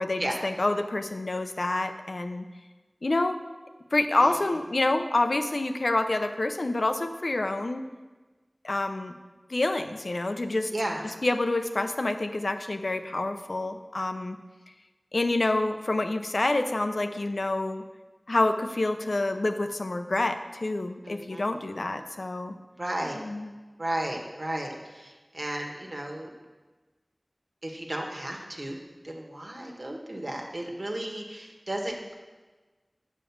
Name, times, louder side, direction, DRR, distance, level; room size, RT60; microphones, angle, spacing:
voice 1, 0.0-2.5 3.0-3.4 3.9-7.8 8.6-9.1 9.5-10.7 11.2-14.4 15.1-17.8 18.3-22.6 23.2-23.5, left 2 dB, 85° left, 8 dB, 0.5 m, -27 dB
voice 2, 4.2-4.6 10.7-11.0 21.0-21.5 21.9-22.1 22.8-23.2 23.8-26.3 27.6-28.8 29.0-32.1, right 1 dB, 60° right, 1 dB, 1.5 m, -34 dB
8.3 x 5.2 x 7.1 m, 1.3 s
wide cardioid pair, 45°, 0 cm